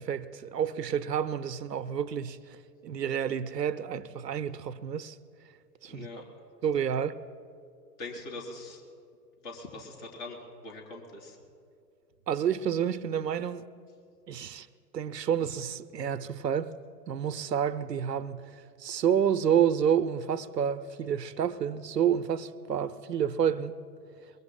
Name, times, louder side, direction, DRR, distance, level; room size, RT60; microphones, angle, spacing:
voice 1, 0.0-2.6 2.8-5.2 5.8-6.1 6.6-7.2 12.3-13.7 14.3-14.7 14.9-16.7 17.1-23.8, right 8 dB, 85° right, 0.7 m, -29 dB
voice 2, 5.8-6.2 8.0-8.8 9.4-11.4, left 2 dB, 40° left, 3.9 m, -42 dB
24.0 x 22.5 x 2.2 m
figure-of-eight pair, 120°, 48 cm